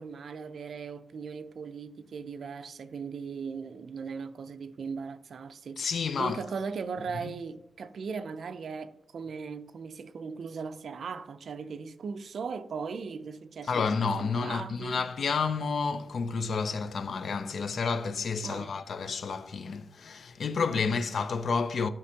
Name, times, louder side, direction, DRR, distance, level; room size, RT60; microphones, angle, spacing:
voice 1, 0.0-13.9 14.2-15.0 18.4-18.8 20.7-21.0, right 5 dB, 60° right, 0.4 m, -38 dB
voice 2, 5.8-6.4 7.2-7.3 13.7-21.9, left 5 dB, 55° left, 0.4 m, -30 dB
11.5 x 5.1 x 2.8 m
wide cardioid pair, 160°, 0 cm